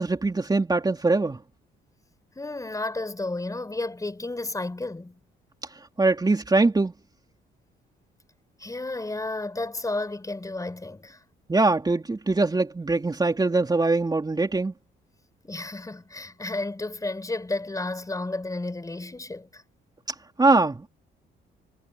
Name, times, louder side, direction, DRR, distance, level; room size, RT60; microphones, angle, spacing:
voice 1, 0.0-1.4 6.0-6.9 11.5-14.7 20.4-20.9, right 3 dB, 20° right, 3.3 m, -22 dB
voice 2, 2.4-5.2 8.6-11.2 15.4-19.6, left 2 dB, 15° left, 4.4 m, -32 dB
cardioid pair, 90°, 20 cm